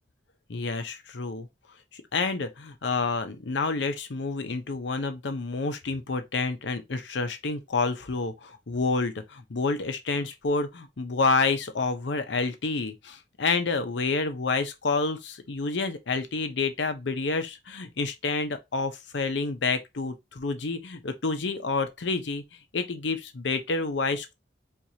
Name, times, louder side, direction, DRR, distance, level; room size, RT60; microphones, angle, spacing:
voice 1, 0.5-1.5 1.9-22.4 22.7-24.4, left 3 dB, 75° left, 0.7 m, -29 dB
4.6 x 2.4 x 2.8 m
head